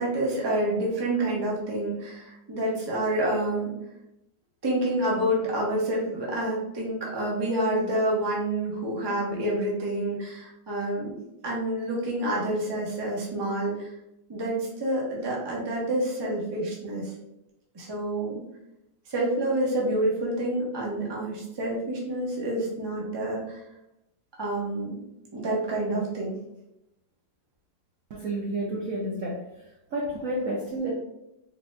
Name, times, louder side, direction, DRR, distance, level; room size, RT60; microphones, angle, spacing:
voice 1, 0.0-3.7 4.6-11.1 11.4-13.9 14.3-17.1 17.7-18.4 19.1-23.6 24.4-25.0 25.3-26.4, right 1 dB, 35° right, -4 dB, 0.4 m, -28 dB
voice 2, 28.1-29.4 29.9-30.9, right 1 dB, 75° right, -2 dB, 0.7 m, -30 dB
3.9 x 3.7 x 2.2 m, 0.87 s
omnidirectional pair, 2.1 m